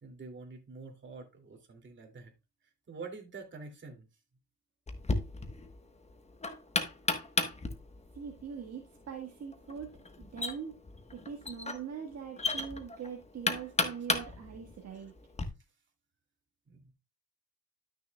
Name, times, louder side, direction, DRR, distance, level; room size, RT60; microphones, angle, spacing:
voice 1, 0.0-2.3 2.6-4.1 14.9-15.1 16.7-16.9, right 4 dB, 40° right, 3 dB, 2.6 m, -47 dB
Knock, 4.9-15.5, left 3 dB, 20° left, 1.2 m, -35 dB
voice 2, 8.1-9.9 10.2-10.8 11.1-15.1, right 7 dB, 55° right, 2 dB, 1.6 m, -42 dB
12.0 x 6.4 x 2.3 m, 0.25 s
cardioid pair, 90°, 30 cm